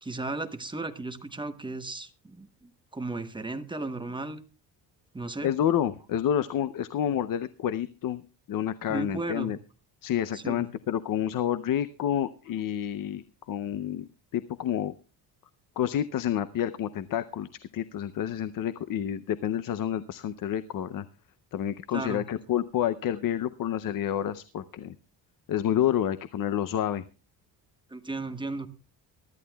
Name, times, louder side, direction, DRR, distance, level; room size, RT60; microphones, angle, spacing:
voice 1, 0.0-4.4 5.1-5.5 8.9-9.5 10.3-10.7 21.9-22.2 27.9-28.7, right 2 dB, 10° right, 8 dB, 0.9 m, -35 dB
voice 2, 5.4-8.2 8.5-9.6 10.0-14.1 14.3-14.9 15.8-21.1 21.5-24.9 25.5-27.0, left 10 dB, 50° left, 13 dB, 0.6 m, -29 dB
23.0 x 13.0 x 2.3 m, 0.32 s
cardioid pair, 150°, 44 cm